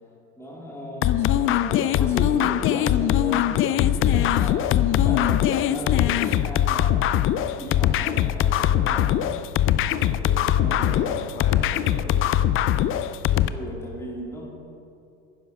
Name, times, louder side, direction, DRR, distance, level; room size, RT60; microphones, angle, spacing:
voice 1, 0.4-3.5 3.7-7.1 7.6-9.5 10.5-11.2 13.3-14.5, left 1 dB, 5° left, -3 dB, 2.7 m, -36 dB
sound 1, 1.0-13.5, left 11 dB, 35° left, 0.5 m, -21 dB
voice 2, 9.7-12.3, left 2 dB, 55° left, -1 dB, 3.2 m, -38 dB
11.0 x 10.0 x 6.5 m, 2.6 s
supercardioid pair, 105°, 37 cm